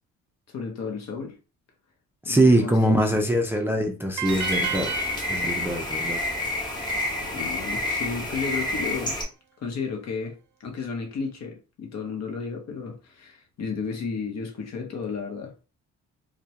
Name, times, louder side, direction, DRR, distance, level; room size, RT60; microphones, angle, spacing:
voice 1, 0.5-1.4 2.2-3.2 7.3-9.2 9.6-15.5, left 5 dB, 60° left, 0.8 m, -33 dB
voice 2, 2.3-4.9 5.3-6.2, right 1 dB, 10° right, 0.4 m, -22 dB
sound 1, 4.2-9.2, left 1 dB, 15° left, 1.0 m, -29 dB
sound 2, 4.2-7.3, right 7 dB, 70° right, 0.5 m, -34 dB
2.2 x 2.2 x 2.8 m
cardioid pair, 90°, 30 cm